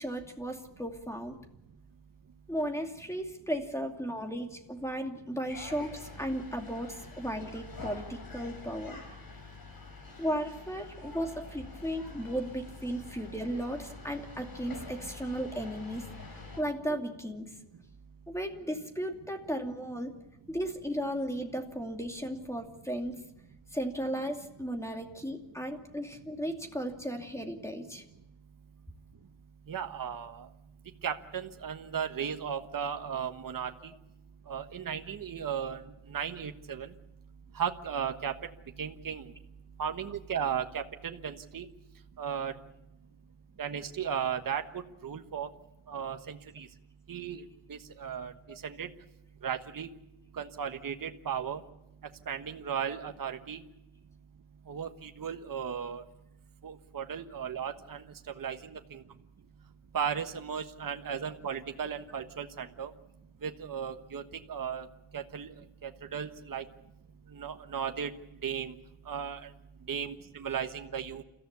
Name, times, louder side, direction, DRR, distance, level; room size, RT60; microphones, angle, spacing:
voice 1, 0.0-1.4 2.5-9.0 10.2-17.5 18.3-20.1 20.5-23.2 23.7-28.0, equal, 5° left, 4 dB, 2.6 m, -35 dB
sound 1, 5.5-16.6, left 3 dB, 50° left, 5.4 m, -46 dB
voice 2, 29.7-30.5 31.0-33.7 34.5-35.8 36.1-36.9 37.6-38.3 38.8-39.2 39.8-41.7 42.2-42.5 43.6-45.5 45.9-46.7 47.1-47.4 47.7-48.3 48.6-48.9 49.4-49.9 50.4-51.6 52.3-53.6 54.7-56.0 56.6-58.0 58.4-59.0 59.9-62.9 63.4-64.2 64.5-64.9 65.1-65.5 65.8-66.6 67.3-68.1 68.4-68.7 69.1-69.5 69.9-71.2, right 7 dB, 45° right, 6 dB, 1.4 m, -35 dB
29.5 x 14.5 x 8.3 m, 0.91 s
wide cardioid pair, 130°, 46 cm